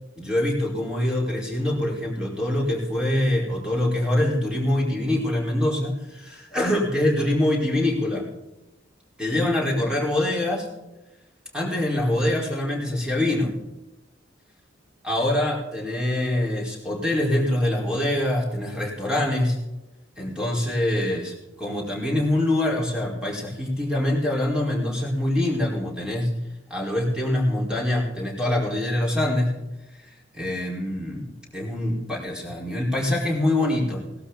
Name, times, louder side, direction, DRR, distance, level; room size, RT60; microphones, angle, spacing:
voice 1, 0.2-8.2 9.2-10.7 11.5-13.5 15.0-19.6 20.2-26.3 26.7-29.5 29.9-30.0 30.3-34.0, left 1 dB, 5° right, -2 dB, 4.6 m, -24 dB
18.0 x 12.5 x 4.0 m, 0.97 s
head